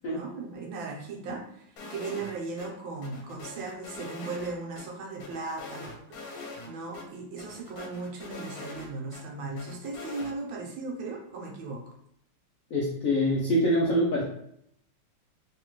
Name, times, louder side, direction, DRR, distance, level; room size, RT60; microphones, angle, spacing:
voice 1, 0.1-11.9, right 3 dB, 75° right, 0 dB, 1.5 m, -37 dB
sound 1, 1.8-2.3 2.6-2.7 3.0-4.8 5.2-6.7 6.9-7.0 7.4-9.2 9.6-10.3, left 3 dB, 85° left, 1.6 m, -42 dB
voice 2, 12.7-14.2, equal, 65° left, -4 dB, 0.8 m, -25 dB
3.5 x 3.1 x 3.0 m, 0.74 s
omnidirectional pair, 2.2 m